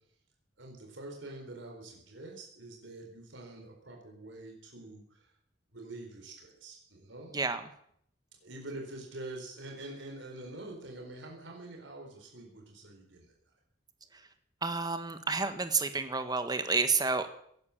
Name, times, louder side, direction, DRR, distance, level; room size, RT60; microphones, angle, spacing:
voice 1, 0.6-5.3 5.7-7.3 8.4-13.3, right 2 dB, 75° right, 0 dB, 4.3 m, -45 dB
voice 2, 14.6-17.4, right 4 dB, 20° right, 9 dB, 1.4 m, -30 dB
17.5 x 11.0 x 7.3 m, 0.67 s
head